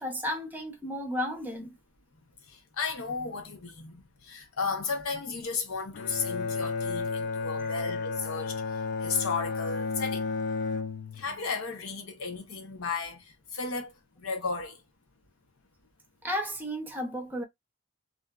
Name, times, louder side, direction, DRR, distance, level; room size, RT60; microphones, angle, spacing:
voice 1, 0.0-1.8 7.6-7.7 16.2-17.4, equal, 10° right, 0.6 m, -33 dB
voice 2, 2.7-8.6 9.0-10.3 11.2-13.3 13.5-13.9 14.2-14.8, left 4 dB, 80° left, 0.9 m, -34 dB
Bowed string instrument, 5.9-11.4, left 4 dB, 50° left, 0.3 m, -32 dB
2.6 x 2.5 x 2.2 m
head